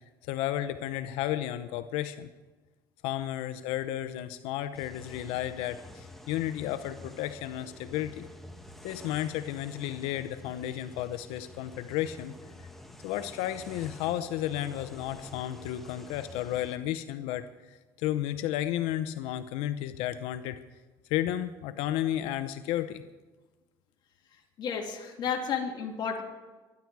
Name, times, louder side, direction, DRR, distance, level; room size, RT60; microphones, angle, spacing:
voice 1, 0.3-2.3 3.0-8.3 8.8-12.3 13.0-17.4 18.0-20.6 21.1-23.0, left 12 dB, 90° left, 12 dB, 0.7 m, -32 dB
sound 1, 4.7-16.8, left 1 dB, ahead, 1.6 m, -49 dB
voice 2, 24.6-26.2, left 6 dB, 50° left, 1 dB, 2.9 m, -32 dB
24.0 x 11.0 x 4.7 m, 1.3 s
cardioid pair, 120°, 9 cm